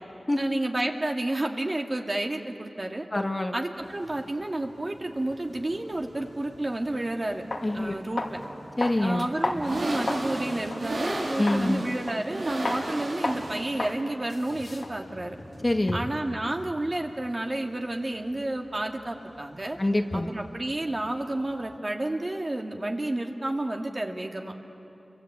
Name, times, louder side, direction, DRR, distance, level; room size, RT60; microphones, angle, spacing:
voice 1, 0.4-3.0 3.5-7.4 7.7-8.4 9.0-15.4 15.9-19.8 20.1-24.5, right 1 dB, 40° right, 2 dB, 2.3 m, -30 dB
voice 2, 3.1-3.5 7.6-7.9 8.8-9.3 11.4-11.8 15.6-16.0 19.8-20.3, left 1 dB, 35° left, 4 dB, 1.8 m, -25 dB
sound 1, 3.8-21.7, right 2 dB, 90° right, 3.9 m, -38 dB
sound 2, 6.9-7.0 7.5-7.7 8.2-8.4 8.8-10.3 10.7-10.9 11.5-11.7 12.1-12.4 12.7-12.8 13.2-13.5 13.8-14.0 14.3-16.2, left 2 dB, 65° left, 2.6 m, -33 dB
29.0 x 23.5 x 8.6 m, 2.9 s
cardioid pair, 45°, 0 cm